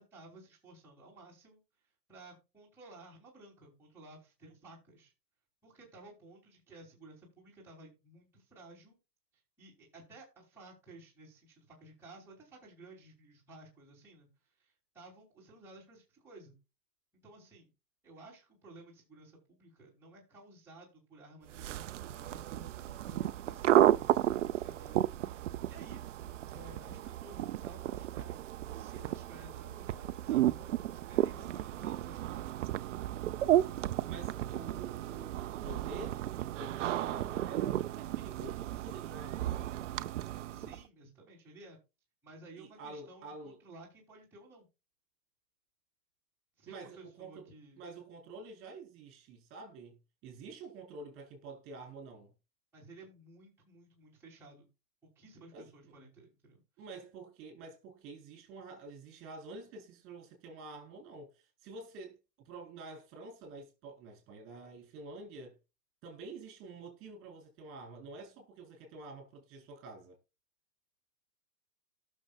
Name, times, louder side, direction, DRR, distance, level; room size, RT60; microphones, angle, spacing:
voice 1, 0.0-1.6 2.1-5.1 5.6-9.0 9.6-14.3 14.6-16.5 17.2-17.7 18.0-26.0 26.5-32.8 40.5-41.8 42.2-44.7 46.6-47.9 52.7-54.7 55.1-56.6, right 2 dB, 5° right, 3.4 m, -55 dB
sound 1, 21.5-40.8, right 13 dB, 50° right, 0.5 m, -33 dB
voice 2, 34.0-39.9 42.6-43.6 46.7-47.5 47.8-50.0 50.2-52.3 55.5-55.9 56.8-62.2 62.4-65.6 66.0-70.2, right 3 dB, 25° right, 4.1 m, -48 dB
17.5 x 6.5 x 2.4 m
hypercardioid pair, 140°, 49 cm